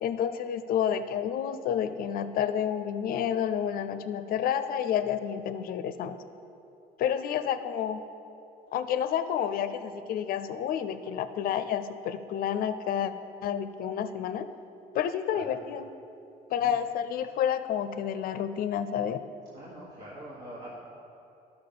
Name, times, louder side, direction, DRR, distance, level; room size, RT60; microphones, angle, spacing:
voice 1, 0.0-6.2 7.0-8.0 8.7-13.1 13.4-14.5 14.9-15.9 16.5-19.2, left 9 dB, 60° left, 12 dB, 0.5 m, -29 dB
voice 2, 19.5-20.7, right 1 dB, 70° right, -7 dB, 1.7 m, -44 dB
12.5 x 5.9 x 3.9 m, 2.7 s
cardioid pair, 110°, 17 cm